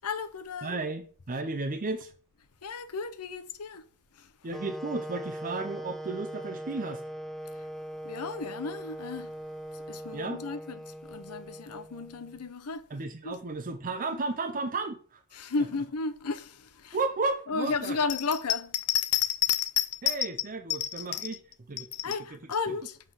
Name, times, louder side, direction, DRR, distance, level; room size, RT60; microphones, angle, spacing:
voice 1, 0.0-0.8 2.6-3.8 4.1-4.3 7.5-7.7 8.0-9.3 9.7-12.9 13.2-13.4 14.1-14.2 15.3-17.0 17.5-21.3 21.8-23.0, left 6 dB, 85° left, 0.8 m, -32 dB
voice 2, 0.6-2.1 4.4-7.0 10.1-10.4 12.9-15.2 16.9-18.0 20.0-21.4 21.7-21.9, right 3 dB, 40° right, 0.6 m, -33 dB
sound 1, 4.5-12.5, equal, ahead, 0.4 m, -41 dB
7.5 x 3.8 x 6.4 m
head